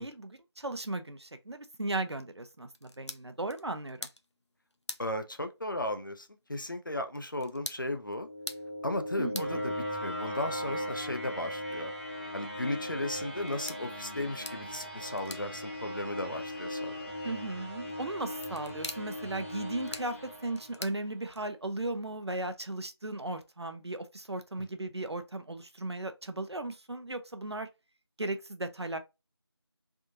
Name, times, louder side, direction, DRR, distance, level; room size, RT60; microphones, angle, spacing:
voice 1, 0.0-4.1 9.2-9.6 17.2-27.7 28.2-29.0, right 2 dB, 70° right, 0.7 m, -36 dB
sound 1, 2.7-21.8, left 2 dB, 90° left, 0.7 m, -49 dB
voice 2, 5.0-8.3 8.8-11.9 12.3-17.1 24.6-24.7, left 1 dB, 50° left, 0.6 m, -36 dB
sound 2, 8.0-21.1, equal, 30° left, 1.0 m, -39 dB
3.5 x 2.7 x 2.8 m
figure-of-eight pair, 175°, 14 cm